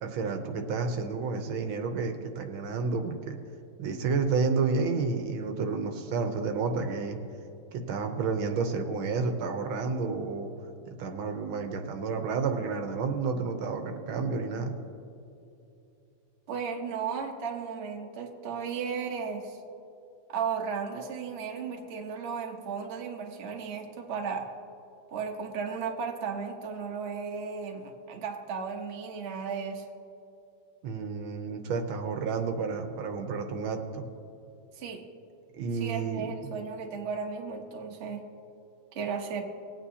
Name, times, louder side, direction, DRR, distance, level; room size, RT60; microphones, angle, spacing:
voice 1, 0.0-3.4 3.8-7.2 7.7-10.5 10.9-14.7 30.8-34.1 35.6-36.2, right 4 dB, 75° right, 5 dB, 1.6 m, -30 dB
voice 2, 16.5-19.6 20.3-24.5 25.1-29.9 34.7-35.0 35.7-38.2 38.9-39.4, right 6 dB, 45° right, 2 dB, 0.9 m, -35 dB
20.0 x 9.0 x 2.8 m, 2.7 s
omnidirectional pair, 2.4 m